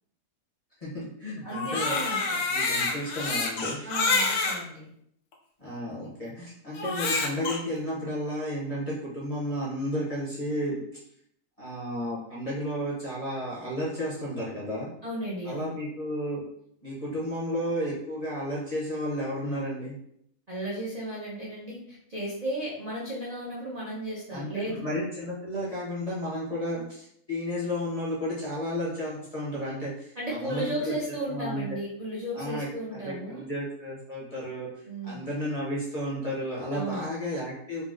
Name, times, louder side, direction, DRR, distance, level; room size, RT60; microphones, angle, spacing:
voice 1, 0.8-2.0 2.5-3.9 5.6-10.8 11.6-14.9 15.4-16.4 16.8-19.9 24.3-30.9 31.3-31.6 32.3-37.8, equal, 35° left, -9 dB, 0.6 m, -32 dB
voice 2, 1.4-2.4 3.8-4.9 15.0-15.7 20.5-24.8 30.2-33.4 34.9-35.3 36.7-37.1, right 1 dB, 60° right, -6 dB, 0.4 m, -34 dB
Crying sobbing, 1.5-4.6 5.3-5.4 6.8-7.6, left 3 dB, 70° left, 0.8 m, -27 dB
3.9 x 2.0 x 2.4 m, 0.70 s
omnidirectional pair, 1.7 m